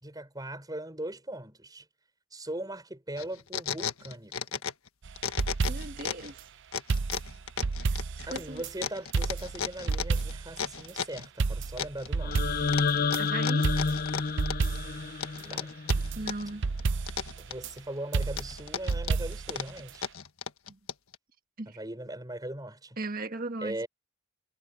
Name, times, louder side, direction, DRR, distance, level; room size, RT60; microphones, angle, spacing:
voice 1, 0.0-1.9 2.3-4.6 8.3-12.5 15.3-15.7 17.4-20.1 21.7-23.0 23.6-23.9, right 1 dB, 20° right, 6.1 m, -39 dB
sound 1, 3.2-4.9 5.2-6.3 6.7-11.3 11.8-12.4 12.7-14.8 15.2-16.5 16.8-17.8 18.2-21.2, left 7 dB, 85° left, 1.4 m, -35 dB
sound 2, 5.1-6.1 6.9-8.7 9.1-10.6 10.9-11.0 11.4-13.2 13.6-15.1 15.4-15.5 15.9-17.7 18.1-19.6 19.9-20.0, right 4 dB, 60° right, 0.6 m, -31 dB
voice 2, 5.7-6.5 7.8-8.6 13.2-13.7 16.1-16.6 20.7-20.8 21.6-21.8 23.0-23.8, right 2 dB, 45° right, 1.7 m, -37 dB
sound 3, 12.2-16.3, left 4 dB, 45° left, 0.6 m, -30 dB
head